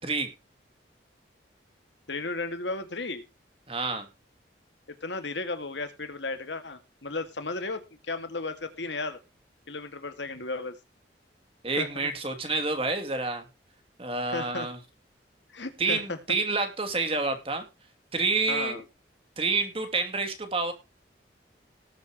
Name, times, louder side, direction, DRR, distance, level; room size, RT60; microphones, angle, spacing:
voice 1, 2.1-3.2 4.9-9.2 9.7-10.8 11.8-11.9 14.3-14.7 15.5-16.2 18.5-18.8, left 3 dB, 75° left, 9 dB, 2.1 m, -34 dB
voice 2, 3.7-4.1 11.6-13.4 14.0-14.8 15.8-17.6 18.1-18.8 19.4-20.7, right 3 dB, 30° right, 7 dB, 2.8 m, -28 dB
19.0 x 7.7 x 3.0 m, 0.27 s
head